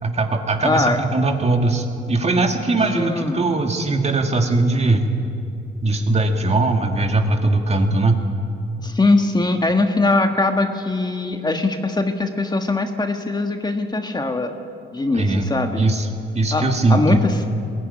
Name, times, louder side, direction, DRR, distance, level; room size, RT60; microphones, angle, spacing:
voice 1, 0.0-5.0 5.8-8.2 15.1-15.5 15.8-16.1 16.3-17.0, right 2 dB, 35° right, 4 dB, 2.2 m, -20 dB
voice 2, 0.6-1.0 2.9-3.5 8.8-14.5 14.9-15.9 16.5-17.4, left 2 dB, 20° left, 5 dB, 1.6 m, -21 dB
21.0 x 15.5 x 9.9 m, 2.6 s
cardioid pair, 90°, 20 cm